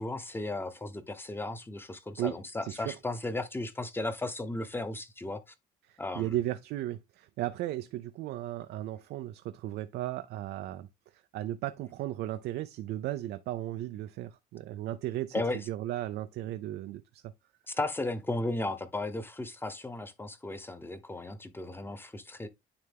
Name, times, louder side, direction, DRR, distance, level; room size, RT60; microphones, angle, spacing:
voice 1, 0.0-5.4 6.0-6.3 15.3-15.6 17.7-22.5, left 2 dB, 15° left, 1.0 m, -35 dB
voice 2, 2.6-3.0 5.9-10.9 11.1-17.3, right 14 dB, 75° right, 0.6 m, -35 dB
9.6 x 3.4 x 3.5 m
cardioid pair, 110°, 17 cm